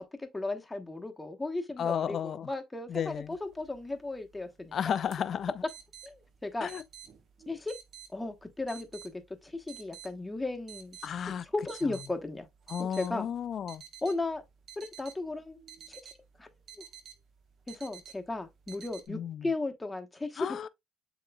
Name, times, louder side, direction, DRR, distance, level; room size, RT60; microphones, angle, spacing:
voice 1, 0.0-5.0 6.0-6.7 7.5-7.8 8.1-8.9 9.1-11.0 11.4-12.5 13.0-13.3 14.0-14.4 14.8-15.6 15.9-16.1 16.4-16.5 16.8-16.9 17.7-20.6, left 2 dB, 15° left, 1.1 m, -35 dB
voice 2, 1.8-2.5 2.9-3.3 4.7-5.5 6.6-6.8 11.0-11.4 12.7-13.8 19.1-19.4 20.4-20.7, left 8 dB, 55° left, 0.4 m, -33 dB
sound 1, 2.9-19.1, right 9 dB, 55° right, 1.1 m, -53 dB
7.5 x 3.0 x 2.3 m
supercardioid pair, 65°, 0 cm